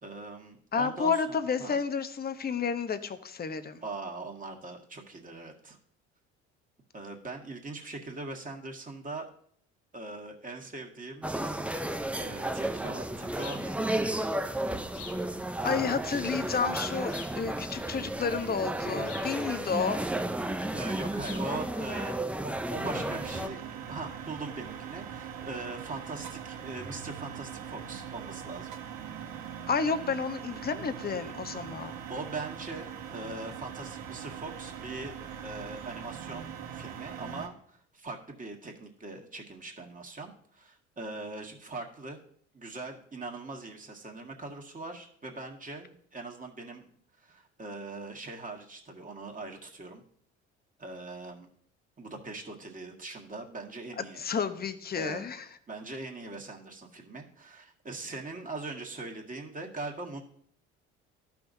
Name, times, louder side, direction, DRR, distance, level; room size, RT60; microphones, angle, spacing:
voice 1, 0.0-1.8 3.8-5.8 6.9-9.3 9.9-11.3 12.2-14.3 20.7-28.7 31.7-42.2 42.5-46.9 47.2-50.0 50.8-51.5 52.0-54.2 55.0-55.3 55.7-60.2, right 2 dB, 25° right, 1 dB, 1.8 m, -41 dB
voice 2, 0.7-3.8 15.6-20.0 29.7-32.0 54.0-55.5, left 5 dB, 30° left, 10 dB, 0.9 m, -31 dB
sound 1, 11.2-23.5, right 1 dB, 5° right, 0.5 m, -33 dB
sound 2, 13.4-13.7 14.9-15.3 17.1-17.4 19.0-19.4 21.2-21.5, left 6 dB, 70° left, 1.1 m, -45 dB
sound 3, 22.7-37.5, right 8 dB, 60° right, 1.5 m, -41 dB
13.5 x 6.0 x 2.7 m, 0.62 s
hypercardioid pair, 65°, 34 cm